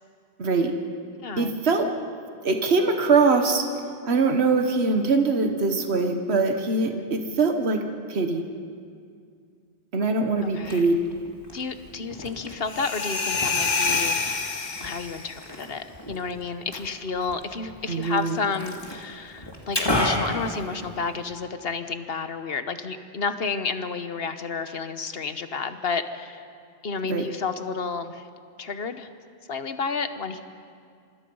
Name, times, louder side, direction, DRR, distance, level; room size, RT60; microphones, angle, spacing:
voice 1, 0.4-0.7 1.4-1.9 2.4-3.6 4.0-8.4 9.9-11.0 17.9-18.4 27.1-27.2, right 4 dB, 85° right, 5 dB, 1.5 m, -22 dB
voice 2, 1.2-1.6 7.0-7.1 10.4-10.8 11.5-14.2 14.8-26.4 26.8-28.3 28.6-29.1 29.5-30.4, left 4 dB, 70° left, 10 dB, 1.3 m, -31 dB
Liquid, 10.4-21.4, left 1 dB, 25° left, 2.6 m, -34 dB
sound 1, 12.7-15.4, left 4 dB, 45° left, 1.3 m, -27 dB
26.5 x 25.0 x 5.5 m, 2.3 s
omnidirectional pair, 1.1 m